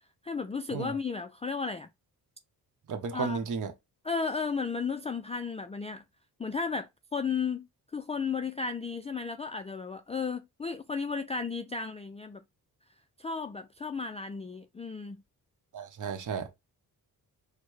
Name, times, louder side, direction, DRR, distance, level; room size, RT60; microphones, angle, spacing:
voice 1, 0.2-1.9 3.1-3.4 4.0-6.0 6.4-7.7 7.9-12.4 13.2-15.2, left 5 dB, 20° left, 0.3 m, -34 dB
voice 2, 2.9-3.7 15.7-16.5, right 5 dB, 50° right, 0.8 m, -33 dB
4.3 x 2.2 x 3.1 m
cardioid pair, 65°, 38 cm